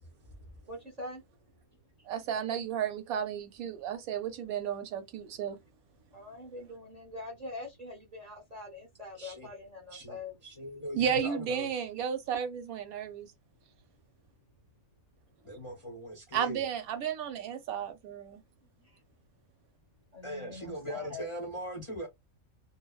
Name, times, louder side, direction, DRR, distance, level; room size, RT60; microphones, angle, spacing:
voice 1, 0.1-1.6 1.9-2.1 3.8-3.9 6.1-10.4 13.9-14.0 18.8-19.0 20.1-21.3, left 2 dB, 40° right, 0.6 m, -45 dB
voice 2, 2.1-5.6 11.0-13.3 16.3-18.4, right 8 dB, 85° right, 1.1 m, -33 dB
voice 3, 9.1-9.5 9.9-11.7 15.4-16.7 20.2-22.1, equal, 40° left, 0.5 m, -40 dB
2.7 x 2.0 x 2.3 m
omnidirectional pair, 1.5 m